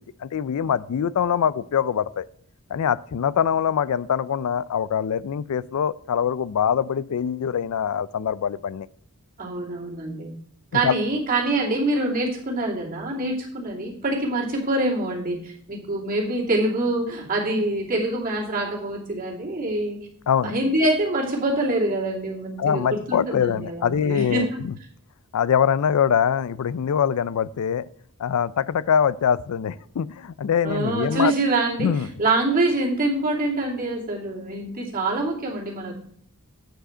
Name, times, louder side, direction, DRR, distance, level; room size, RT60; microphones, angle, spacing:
voice 1, 0.2-2.3 2.7-8.9 10.7-10.9 20.3-20.5 22.6-24.7 25.3-27.9 28.2-31.3 31.8-32.1, left 8 dB, 75° left, 19 dB, 0.4 m, -23 dB
voice 2, 9.4-10.4 10.7-20.0 20.4-24.6 30.6-31.9 32.2-35.9, right 2 dB, 40° right, -3 dB, 2.7 m, -25 dB
9.1 x 4.9 x 5.6 m, 0.64 s
head